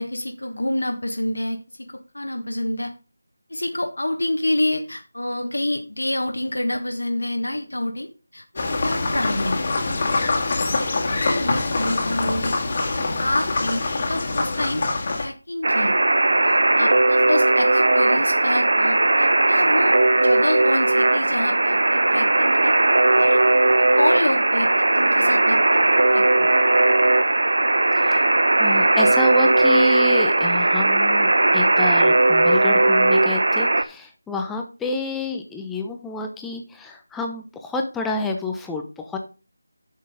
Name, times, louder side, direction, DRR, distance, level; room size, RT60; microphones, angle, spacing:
voice 1, 0.0-2.9 3.5-9.6 10.2-10.3 10.7-13.8 14.1-14.8 15.2-15.9 16.4-19.9 20.2-22.7 23.1-23.4 23.8-25.8 26.1-26.5, left 1 dB, 80° left, 5 dB, 1.3 m, -27 dB
sound 1, 8.6-15.3, left 3 dB, 35° left, 1.9 m, -24 dB
Alarm, 15.6-33.8, right 2 dB, 60° right, 0.8 m, -18 dB
voice 2, 27.9-39.2, left 2 dB, 5° left, 2 dB, 0.7 m, -29 dB
9.5 x 6.5 x 3.7 m, 0.33 s
figure-of-eight pair, 165°, 0 cm